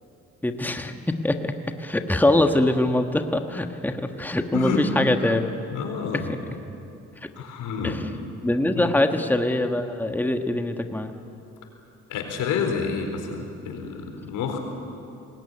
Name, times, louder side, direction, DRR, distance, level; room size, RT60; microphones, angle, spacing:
voice 1, 0.4-5.5 6.1-6.4 7.2-7.3 7.8-8.1 8.4-11.1, left 1 dB, 5° left, 6 dB, 1.5 m, -23 dB
voice 2, 5.7-6.2 7.4-7.9 8.7-8.9 12.1-14.6, left 5 dB, 85° left, 4 dB, 4.3 m, -29 dB
24.5 x 20.5 x 9.9 m, 2.7 s
cardioid pair, 90°, 30 cm